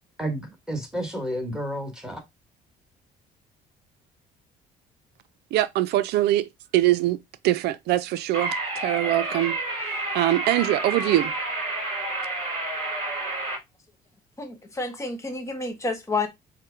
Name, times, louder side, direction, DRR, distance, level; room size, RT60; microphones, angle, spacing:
voice 1, 0.2-2.2, right 1 dB, 5° right, 1.5 m, -31 dB
voice 2, 5.5-9.6 10.1-11.3, right 15 dB, 75° right, 0.4 m, -23 dB
sound 1, 8.3-13.6, right 2 dB, 45° right, 2.8 m, -29 dB
voice 3, 14.4-16.3, left 3 dB, 15° left, 1.3 m, -29 dB
4.5 x 2.1 x 4.6 m
cardioid pair, 110°, 17 cm